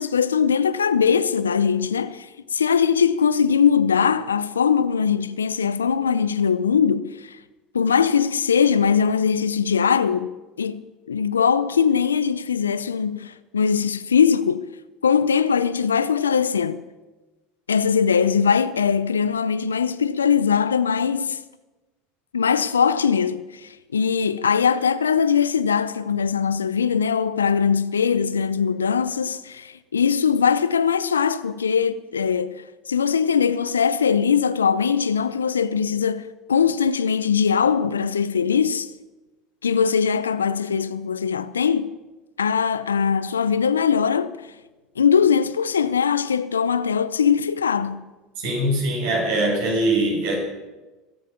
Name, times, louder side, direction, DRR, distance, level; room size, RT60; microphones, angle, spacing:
voice 1, 0.0-7.4 7.7-10.3 10.6-10.8 11.1-14.7 15.0-16.8 17.7-21.4 22.3-38.9 39.6-42.0 42.4-44.5 45.0-48.1, left 6 dB, 90° left, 0.5 m, -21 dB
voice 2, 48.4-50.4, right 1 dB, 70° right, 6.7 m, -22 dB
24.0 x 8.4 x 5.9 m
hypercardioid pair, 75°, 0 cm